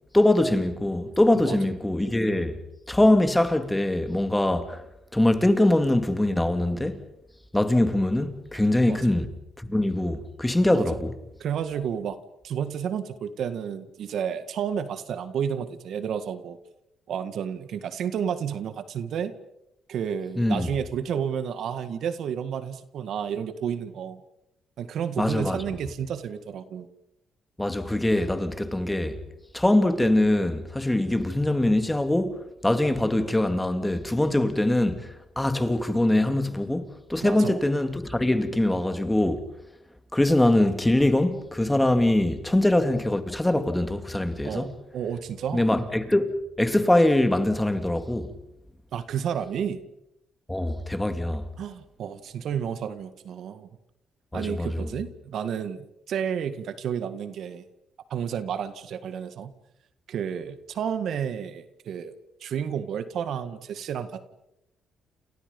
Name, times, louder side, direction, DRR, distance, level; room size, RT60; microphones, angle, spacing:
voice 1, 0.1-2.6 2.9-4.8 5.1-7.0 7.5-9.3 9.6-11.1 20.4-20.7 25.2-25.6 27.6-29.2 29.5-39.5 40.1-44.7 45.5-48.3 50.5-51.5 54.3-54.9, left 1 dB, 10° left, 2.7 m, -23 dB
voice 2, 8.5-9.0 10.7-11.0 11.4-12.2 12.4-16.6 17.1-19.3 19.9-24.2 24.8-26.9 37.2-37.6 44.4-45.7 48.9-49.8 51.6-53.7 54.3-57.6 58.1-59.5 60.1-62.1 62.4-64.2, right 8 dB, 70° right, 1.9 m, -31 dB
29.5 x 29.5 x 5.4 m
cardioid pair, 90°, 0 cm